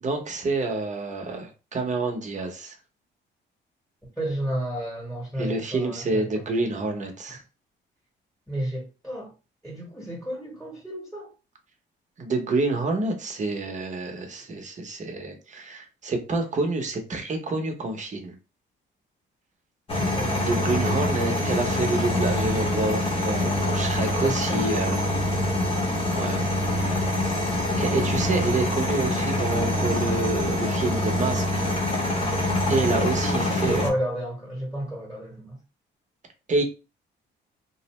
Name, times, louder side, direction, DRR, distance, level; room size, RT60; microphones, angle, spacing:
voice 1, 0.0-2.7 5.4-7.4 12.2-18.3 20.4-25.0 26.1-26.4 27.8-31.6 32.7-33.8 36.5-36.6, right 3 dB, 40° right, 0.8 m, -28 dB
voice 2, 4.2-6.3 7.3-7.4 8.5-9.3 9.6-11.3 19.9-20.5 24.2-24.6 32.6-35.6, right 1 dB, ahead, 1.1 m, -32 dB
sound 1, 19.9-33.9, left 1 dB, 30° left, 0.8 m, -25 dB
2.5 x 2.0 x 3.0 m
cardioid pair, 90°, 20 cm